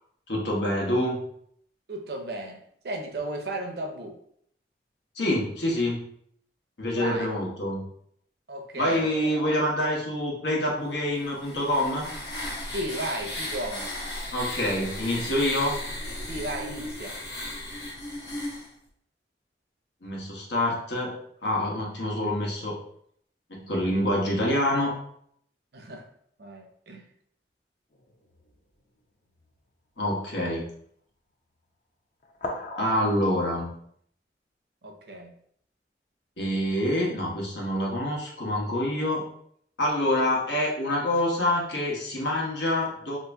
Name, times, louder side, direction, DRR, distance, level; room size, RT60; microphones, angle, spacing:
voice 1, 0.3-1.2 5.2-6.0 6.8-7.9 8.8-12.1 14.3-15.8 20.0-21.1 21.4-22.8 23.5-24.9 30.0-30.7 32.7-33.7 36.4-39.2 39.8-43.2, left 1 dB, 90° left, -3 dB, 1.1 m, -26 dB
voice 2, 1.9-4.2 6.9-7.3 8.5-9.1 12.7-14.0 16.3-17.2 25.7-26.1 26.4-27.1 34.8-35.3, right 1 dB, 65° right, 3 dB, 0.6 m, -34 dB
sound 1, 11.1-18.7, left 1 dB, 65° left, 1.2 m, -35 dB
sound 2, 27.9-28.7 29.3-29.5 30.4-30.6 32.2-33.6, left 1 dB, 45° left, 0.5 m, -39 dB
2.8 x 2.6 x 3.3 m, 0.67 s
head